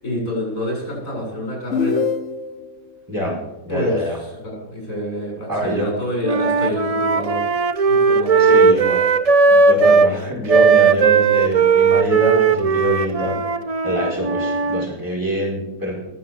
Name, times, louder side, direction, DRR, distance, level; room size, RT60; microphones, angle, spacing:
voice 1, 0.0-2.0 3.7-7.4 7.9-8.6, equal, 80° left, -2 dB, 7.8 m, -27 dB
sound 1, 1.7-2.8, left 5 dB, 65° left, 1.1 m, -23 dB
voice 2, 3.6-4.2 5.5-5.9 8.4-9.0 9.5-13.4 13.8-15.9, equal, 15° right, -2 dB, 4.9 m, -24 dB
Wind instrument woodwind instrument, 6.2-10.1 10.5-14.9, right 5 dB, 50° right, 0.4 m, -16 dB
21.0 x 7.6 x 7.4 m, 0.93 s
omnidirectional pair, 1.4 m